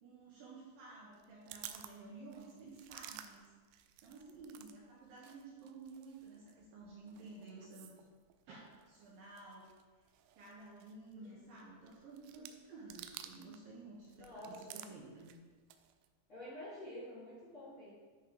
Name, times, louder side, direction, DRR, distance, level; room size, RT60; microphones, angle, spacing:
voice 1, 0.0-3.5 4.0-8.1 8.5-8.6 8.9-9.7 10.4-15.3, right 3 dB, 65° right, -5 dB, 2.5 m, -53 dB
sound 1, 1.1-4.8 5.0-13.7 14.0-16.1, right 11 dB, 90° right, 2.7 m, -54 dB
voice 2, 11.1-11.5 14.1-14.9 16.3-17.9, left 1 dB, 20° left, -9 dB, 2.2 m, -49 dB
10.5 x 5.5 x 3.9 m, 1.5 s
omnidirectional pair, 4.9 m